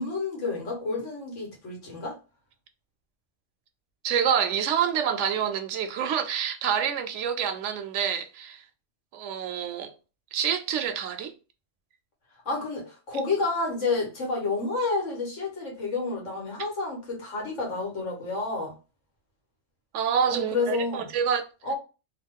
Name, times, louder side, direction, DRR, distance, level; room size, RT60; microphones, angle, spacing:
voice 1, 0.0-2.2 12.4-18.8 20.3-21.1 21.6-21.7, left 3 dB, 85° left, 1.6 m, -30 dB
voice 2, 4.0-8.6 9.1-9.9 10.3-11.3 19.9-21.5, right 8 dB, 80° right, 0.9 m, -27 dB
3.0 x 2.3 x 3.5 m
omnidirectional pair, 1.2 m